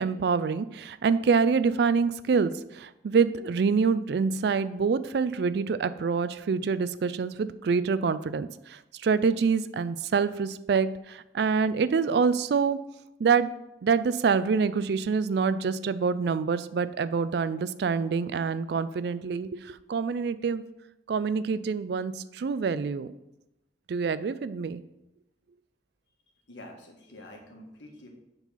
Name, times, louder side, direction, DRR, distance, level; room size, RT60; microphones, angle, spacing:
voice 1, 0.0-12.8 13.2-13.5 13.8-20.6 21.1-23.1 23.9-24.8, right 5 dB, 60° right, 14 dB, 0.3 m, -26 dB
voice 2, 26.5-28.1, left 1 dB, 85° left, 1 dB, 1.5 m, -47 dB
7.1 x 3.9 x 5.6 m, 0.91 s
head